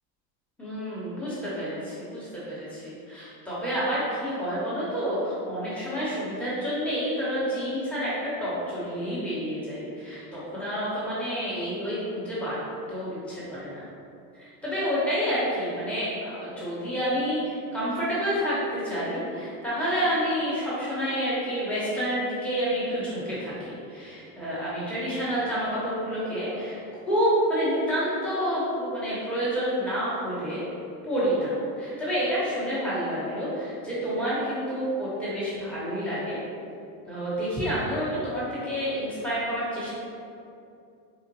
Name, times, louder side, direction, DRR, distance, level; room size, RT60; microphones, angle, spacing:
voice 1, 0.6-12.6 12.9-13.9 14.3-26.8 27.1-30.6 31.0-36.4 37.1-39.9, equal, 5° left, -10 dB, 1.0 m, -29 dB
3.9 x 2.4 x 2.9 m, 2.5 s
supercardioid pair, 110°, 45 cm